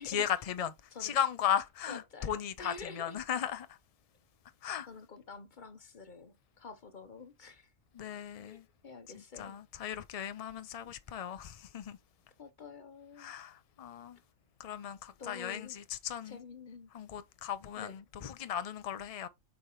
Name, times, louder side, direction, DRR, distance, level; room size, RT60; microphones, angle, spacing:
voice 1, 0.0-0.7 1.0-3.8 4.6-4.9 7.9-8.6 9.1-12.0 13.2-14.2 14.6-16.4 16.9-19.3, left 9 dB, 70° left, 0.3 m, -36 dB
voice 2, 1.9-3.2 4.9-7.7 8.4-9.6 12.4-13.3 15.2-15.8 16.2-16.9 17.8-18.0, left 4 dB, 45° left, 0.8 m, -48 dB
7.1 x 4.9 x 2.9 m
omnidirectional pair, 1.4 m